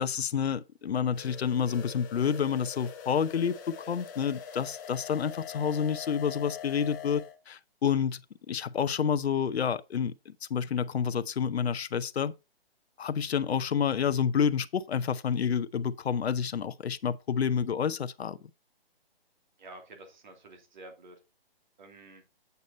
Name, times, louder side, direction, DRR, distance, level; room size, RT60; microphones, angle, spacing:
voice 1, 0.0-8.2 8.5-12.3 13.0-18.4, left 7 dB, 90° left, 0.7 m, -29 dB
sound 1, 1.1-7.3, left 8 dB, 20° left, 1.0 m, -43 dB
voice 2, 19.6-21.2 21.8-22.2, right 2 dB, 50° right, 2.7 m, -49 dB
8.2 x 6.6 x 4.1 m
hypercardioid pair, 165°, 31 cm